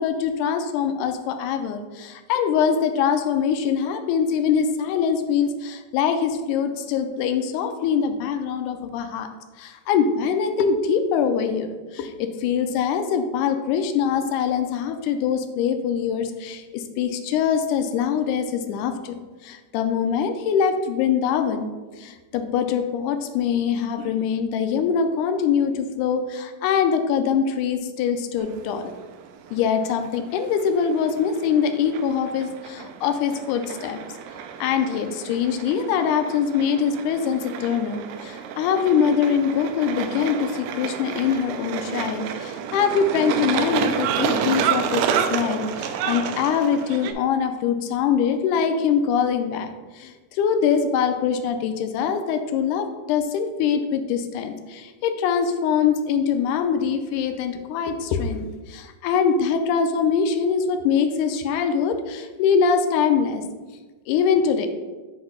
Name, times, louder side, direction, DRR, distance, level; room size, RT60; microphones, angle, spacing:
voice 1, 0.0-9.3 9.6-19.2 19.4-21.7 22.0-28.9 29.5-34.0 34.6-49.7 49.9-63.4 64.1-64.7, left 7 dB, 80° left, 7 dB, 1.9 m, -23 dB
sound 1, 28.4-47.1, right 8 dB, 80° right, 2.1 m, -30 dB
7.8 x 2.9 x 5.5 m, 1.3 s
omnidirectional pair, 3.8 m